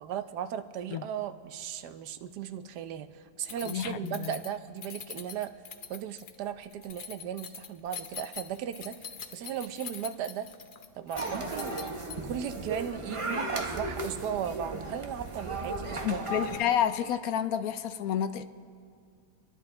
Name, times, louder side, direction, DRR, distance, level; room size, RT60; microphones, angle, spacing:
voice 1, 0.0-5.5 5.9-10.5 10.9-11.8 12.2-16.2, right 9 dB, 85° right, 10 dB, 1.2 m, -36 dB
Keys jangling, 3.4-12.4, left 7 dB, 55° left, 0.5 m, -44 dB
voice 2, 3.6-4.4 16.0-18.4, left 9 dB, 70° left, 11 dB, 1.0 m, -30 dB
sound 1, 11.1-16.6, right 2 dB, 25° right, 0.8 m, -35 dB
29.0 x 11.0 x 3.8 m, 2.3 s
omnidirectional pair, 1.7 m